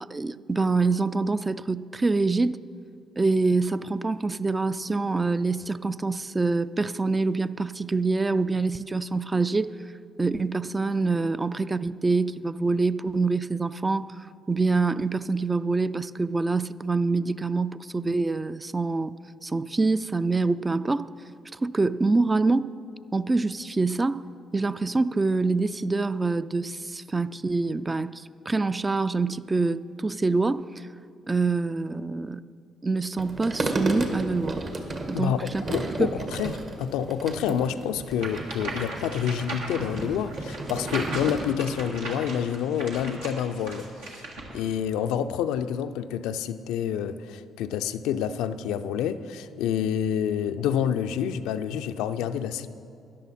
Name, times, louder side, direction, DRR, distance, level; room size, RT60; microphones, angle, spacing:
voice 1, 0.1-2.6 3.2-9.7 10.2-19.1 19.4-21.1 21.5-22.7 23.1-24.2 24.5-30.8 31.3-32.4 32.8-34.6 35.1-35.6 36.0-36.1, right 3 dB, 25° right, 0.3 m, -25 dB
sound 1, 33.2-41.5, right 2 dB, 50° right, 1.5 m, -33 dB
voice 2, 35.1-44.2 44.5-52.7, left 9 dB, 80° left, 0.4 m, -28 dB
sound 2, 38.1-44.6, right 2 dB, 85° right, 1.7 m, -37 dB
13.0 x 10.5 x 4.2 m
hypercardioid pair, 50°, 0 cm